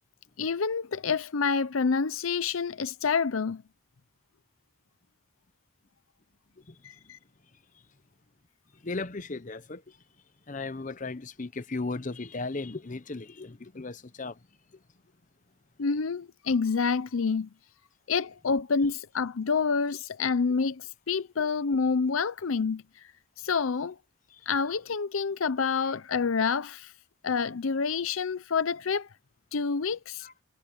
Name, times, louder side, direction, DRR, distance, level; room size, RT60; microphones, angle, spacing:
voice 1, 0.4-3.6 6.8-7.2 15.8-17.5 18.1-23.0 23.4-24.0 24.5-26.9 27.2-29.1 29.5-30.3, left 5 dB, 85° left, 0.6 m, -28 dB
voice 2, 8.8-10.0 10.5-14.4 24.3-24.4 30.2-30.3, left 3 dB, 40° left, 0.8 m, -36 dB
head